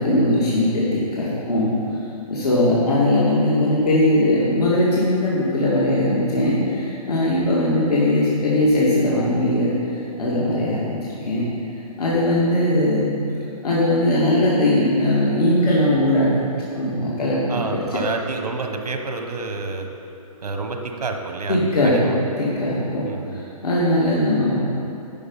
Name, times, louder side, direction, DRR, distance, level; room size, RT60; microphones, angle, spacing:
voice 1, 0.0-1.7 2.3-11.4 12.0-13.1 13.6-16.3 16.7-18.0 21.5-22.0 22.4-23.0 23.3-24.5, left 1 dB, 85° left, -7 dB, 2.4 m, -20 dB
voice 2, 17.5-19.9 20.4-22.2 23.0-23.4, right 3 dB, 90° right, 4 dB, 1.3 m, -29 dB
11.0 x 5.4 x 5.6 m, 2.7 s
hypercardioid pair, 165°, 19 cm